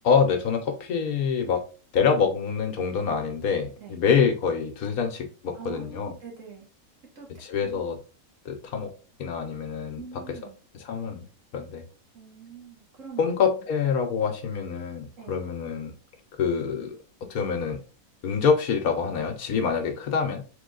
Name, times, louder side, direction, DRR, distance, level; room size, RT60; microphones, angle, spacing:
voice 1, 0.0-1.7 1.9-6.1 7.4-8.0 8.4-8.9 9.2-10.0 10.8-11.2 11.5-11.8 13.2-15.9 16.4-17.0 17.3-17.8 18.2-20.4, left 6 dB, 70° left, 1.2 m, -25 dB
voice 2, 5.5-6.7 7.1-7.3 7.6-7.8 9.9-10.6 12.1-13.2 15.2-15.4, right 6 dB, 55° right, 1.5 m, -43 dB
3.7 x 3.5 x 3.7 m
omnidirectional pair, 1.7 m